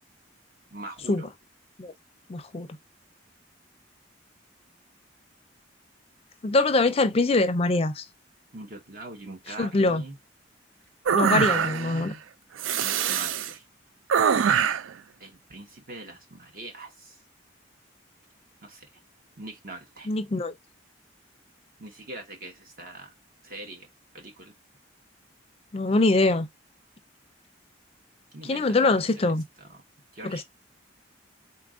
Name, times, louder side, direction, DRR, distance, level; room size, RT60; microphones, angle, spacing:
voice 1, 0.7-1.3 8.5-10.2 11.2-12.2 12.8-13.6 15.2-17.2 18.6-18.9 19.4-20.1 21.8-23.1 23.4-23.9 24.1-24.5 28.3-29.3 29.6-29.8 30.1-30.4, right 2 dB, 50° right, 0.9 m, -42 dB
voice 2, 2.3-2.7 6.4-8.0 9.6-10.0 11.1-12.1 20.1-20.5 25.7-26.5 28.4-29.4 30.2-30.4, left 2 dB, 30° left, 0.5 m, -23 dB
sound 1, 11.1-12.0 12.6-13.5 14.1-14.9, right 7 dB, 90° right, 0.4 m, -23 dB
4.1 x 2.4 x 3.6 m
head